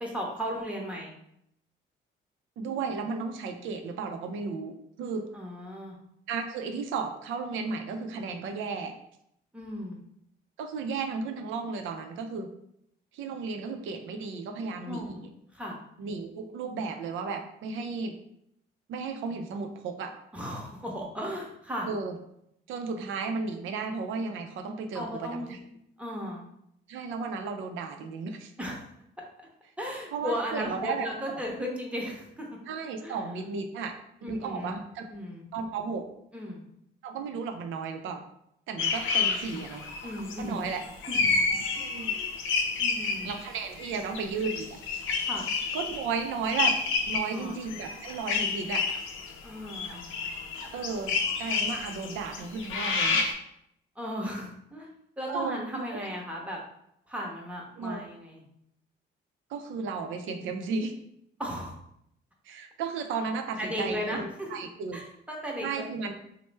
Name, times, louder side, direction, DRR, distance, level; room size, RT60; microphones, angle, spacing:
voice 1, 0.0-1.1 5.3-6.0 9.5-10.0 14.9-15.2 15.5-15.8 20.3-21.9 24.9-25.6 26.0-26.4 28.6-28.8 29.4-29.5 29.8-32.5 33.0-33.2 34.2-34.7 35.1-35.4 36.3-36.6 39.2-39.7 40.0-40.7 41.1-41.5 42.0-42.4 42.8-43.3 45.2-45.5 47.3-47.6 49.4-50.0 54.0-54.9 55.2-56.6 57.1-58.4 61.4-61.7 63.6-64.5 64.9-65.9, equal, 5° right, -1 dB, 0.8 m, -36 dB
voice 2, 2.6-5.2 6.3-8.9 10.6-12.5 13.1-15.3 16.0-18.1 18.9-20.1 21.9-22.1 22.7-25.6 26.9-28.5 30.1-31.1 32.7-33.9 34.2-35.1 35.5-36.1 37.0-38.2 38.7-39.8 40.4-40.8 41.8-42.2 43.2-44.8 45.7-46.8 47.1-48.9 50.7-51.1 51.4-53.2 55.3-56.1 57.8-58.0 59.5-60.9 62.4-65.0 65.6-66.1, right 4 dB, 80° right, 6 dB, 0.5 m, -34 dB
sound 1, 38.8-43.5 43.8-53.3, left 4 dB, 85° left, 0.5 m, -30 dB
3.1 x 2.0 x 3.2 m, 0.75 s
cardioid pair, 90°, 20 cm